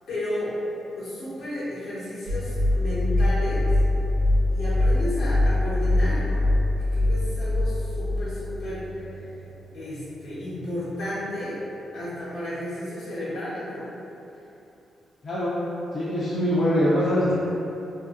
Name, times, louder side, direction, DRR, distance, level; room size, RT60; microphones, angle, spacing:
voice 1, 0.1-0.5 0.9-3.6 4.5-6.5 6.9-8.8 9.7-11.6 11.9-13.9, left 1 dB, 75° left, -10 dB, 1.0 m, -32 dB
sound 1, 2.3-9.5, left 1 dB, 65° right, 0.6 m, -23 dB
voice 2, 15.2-15.6 15.9-17.3, equal, 40° left, -9 dB, 0.4 m, -23 dB
2.7 x 2.6 x 2.4 m, 2.8 s
cardioid pair, 130°, 0 cm